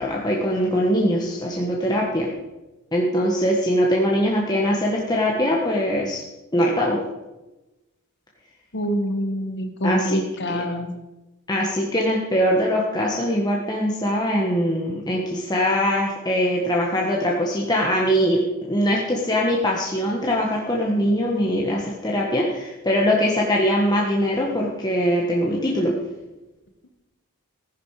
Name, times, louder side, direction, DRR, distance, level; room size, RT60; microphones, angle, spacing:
voice 1, 0.0-2.3 2.9-6.2 6.5-7.0 9.8-10.2 10.5-10.6 11.5-25.9, equal, 20° left, -3 dB, 1.5 m, -22 dB
voice 2, 8.7-10.9, equal, 55° left, 6 dB, 1.6 m, -26 dB
15.0 x 10.5 x 5.0 m, 1.0 s
head